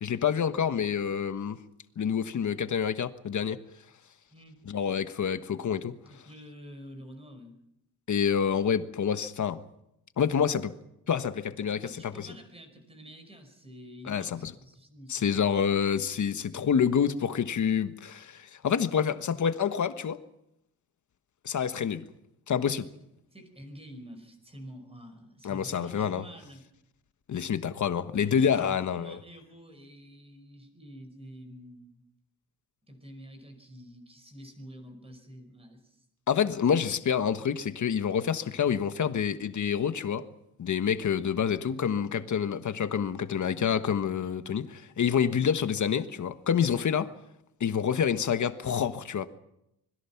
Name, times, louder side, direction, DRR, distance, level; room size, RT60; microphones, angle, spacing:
voice 1, 0.0-1.6 2.0-3.6 4.7-5.9 8.1-9.6 10.2-10.7 11.1-12.3 14.1-14.5 15.1-20.2 21.4-22.0 22.5-22.9 25.4-26.2 27.3-29.2 36.3-40.2 40.6-47.1 47.6-49.3, left 7 dB, 45° left, 1.4 m, -27 dB
voice 2, 6.1-7.6 11.7-15.4 23.3-26.6 28.2-32.0 32.9-36.0, equal, 15° right, 5.1 m, -48 dB
25.5 x 21.5 x 5.9 m
cardioid pair, 140°, 39 cm